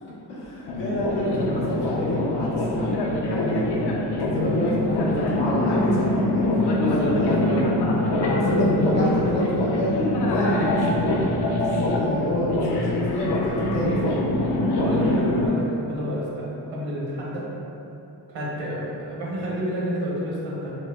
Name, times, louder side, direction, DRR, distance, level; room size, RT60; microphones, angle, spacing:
voice 1, 0.0-3.7 4.2-7.7 8.4-14.2, left 1 dB, 85° left, -8 dB, 1.0 m, -28 dB
sound 1, 0.7-15.5, left 1 dB, 65° left, 0.6 m, -24 dB
voice 2, 6.8-7.1 7.4-7.7 8.0-8.4 14.8-17.5 18.3-20.7, equal, 85° right, -5 dB, 1.0 m, -30 dB
4.4 x 2.2 x 2.3 m, 2.8 s
cardioid pair, 65°, 44 cm